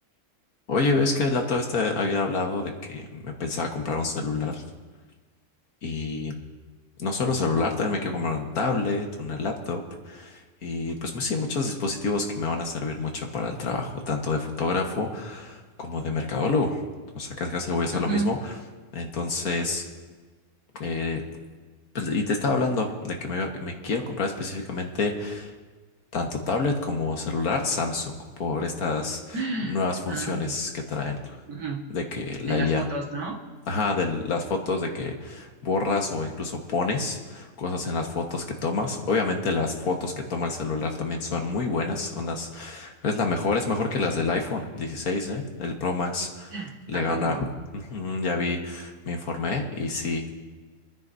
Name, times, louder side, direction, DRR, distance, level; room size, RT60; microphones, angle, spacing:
voice 1, 0.7-4.6 5.8-6.3 7.0-16.8 17.2-18.4 18.9-19.8 20.8-21.2 22.0-25.5 26.1-29.4 29.7-31.4 31.9-32.8 33.7-46.5 46.9-47.4 47.9-50.3, left 3 dB, 70° left, 2 dB, 1.8 m, -28 dB
voice 2, 17.9-18.3 29.3-29.8 30.1-30.6 31.5-31.8 32.5-33.4 46.5-47.5, right 4 dB, 75° right, -1 dB, 2.2 m, -31 dB
29.5 x 9.8 x 2.7 m, 1.3 s
omnidirectional pair, 1.6 m